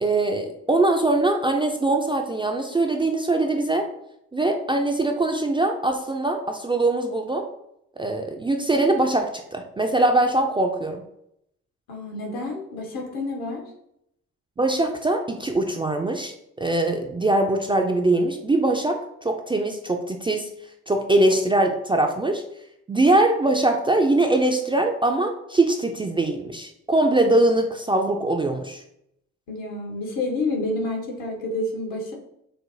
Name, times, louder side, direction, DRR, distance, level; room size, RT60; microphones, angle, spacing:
voice 1, 0.0-3.9 4.3-7.4 8.0-11.0 14.6-20.5 20.9-22.4 22.9-28.8, right 2 dB, 15° right, 3 dB, 0.3 m, -22 dB
voice 2, 11.9-13.6 29.5-32.1, left 2 dB, 70° left, 0 dB, 1.0 m, -29 dB
4.8 x 2.0 x 2.6 m, 0.77 s
hypercardioid pair, 40°, 37 cm